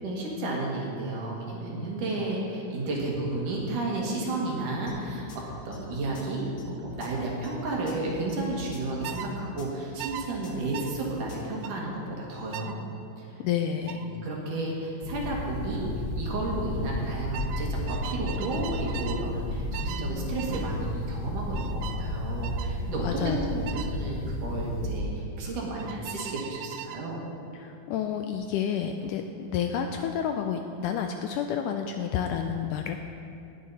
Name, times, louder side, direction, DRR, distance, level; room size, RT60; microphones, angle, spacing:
voice 1, 0.0-12.7 13.2-13.4 13.9-27.2, right 2 dB, 65° right, -3 dB, 3.4 m, -32 dB
sound 1, 4.9-11.5, left 2 dB, 60° left, 2.4 m, -44 dB
sound 2, 9.0-9.3 10.0-10.3 10.7-10.9 11.6-11.8 12.5-12.8 13.9-14.1 15.5-15.8 16.1-16.4 17.3-19.3 19.7-20.1 20.4-20.7 21.5-22.0 22.4-22.7 23.7-23.9 25.8-27.1, right 10 dB, 85° right, 1.8 m, -39 dB
voice 2, 13.4-14.0 23.0-23.6 27.6-33.0, left 8 dB, 80° left, 5 dB, 1.9 m, -30 dB
sound 3, 15.0-25.0, left 1 dB, 45° left, 1.7 m, -32 dB
19.5 x 8.5 x 4.2 m, 2.6 s
omnidirectional pair, 4.1 m